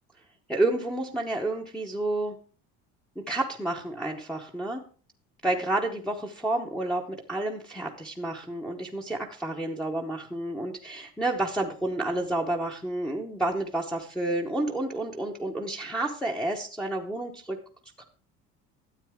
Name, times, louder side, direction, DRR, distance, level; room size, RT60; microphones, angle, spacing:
voice 1, 0.5-2.4 3.3-4.8 5.4-17.6 18.0-18.1, right 2 dB, 5° left, -2 dB, 0.9 m, -30 dB
12.5 x 8.7 x 3.5 m, 0.39 s
cardioid pair, 165°, 29 cm